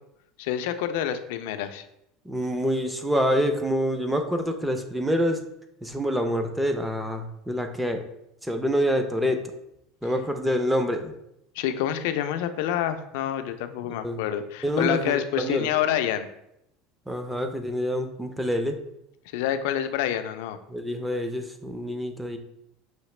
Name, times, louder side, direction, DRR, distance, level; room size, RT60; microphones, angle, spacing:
voice 1, 0.4-1.8 11.6-16.3 19.3-20.6, left 10 dB, 75° left, 9 dB, 0.4 m, -27 dB
voice 2, 2.2-5.4 5.8-8.0 8.4-9.4 10.0-11.1 13.9-14.3 14.6-15.7 17.1-18.8 20.7-22.4, equal, 5° right, 6 dB, 0.4 m, -26 dB
5.7 x 2.9 x 3.1 m, 0.80 s
cardioid pair, 155°, 0 cm